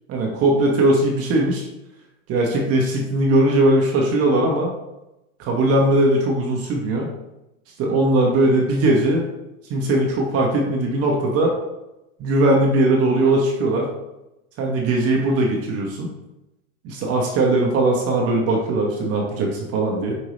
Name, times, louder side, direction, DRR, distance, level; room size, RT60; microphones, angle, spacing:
voice 1, 0.1-1.6 2.3-4.7 5.4-7.1 7.8-9.2 9.7-11.5 12.2-13.9 14.6-16.1 16.8-20.2, right 1 dB, 35° right, -1 dB, 0.8 m, -19 dB
5.0 x 2.6 x 3.1 m, 0.93 s
hypercardioid pair, 115°, 43 cm